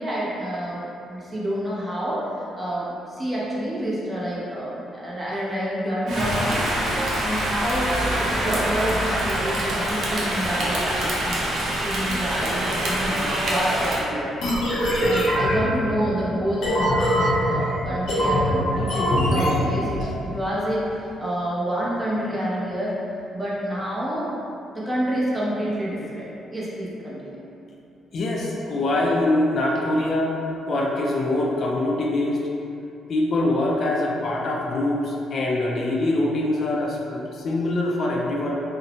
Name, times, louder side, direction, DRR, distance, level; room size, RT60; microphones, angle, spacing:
voice 1, 0.0-6.8 7.2-10.9 11.2-13.2 13.4-14.3 15.0-23.0 23.3-24.3 24.7-27.2, equal, 15° right, -7 dB, 0.7 m, -28 dB
Rain, 6.1-14.0, right 1 dB, 70° right, 0.5 m, -25 dB
sound 1, 14.4-20.1, equal, 80° left, 0.7 m, -23 dB
voice 2, 14.8-15.2 20.0-20.1 28.1-30.4 30.7-32.4 33.1-38.6, left 1 dB, 55° left, -2 dB, 0.3 m, -24 dB
2.6 x 2.0 x 2.9 m, 2.7 s
cardioid pair, 90°, 0 cm